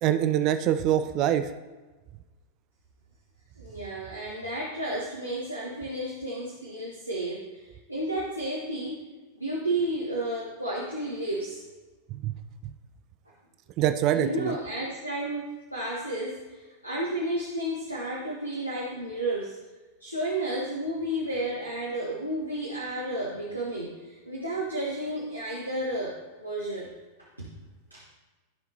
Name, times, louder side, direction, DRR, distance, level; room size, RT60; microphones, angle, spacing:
voice 1, 0.0-1.5 12.1-12.3 13.8-14.6, right 11 dB, 40° right, 10 dB, 0.4 m, -24 dB
voice 2, 3.6-9.0 9.3-11.7 14.1-19.6 20.0-26.9 27.4-27.5 27.9-28.0, right 1 dB, 90° right, -5 dB, 1.2 m, -32 dB
13.5 x 5.2 x 2.8 m, 1.2 s
figure-of-eight pair, 90°, 0 cm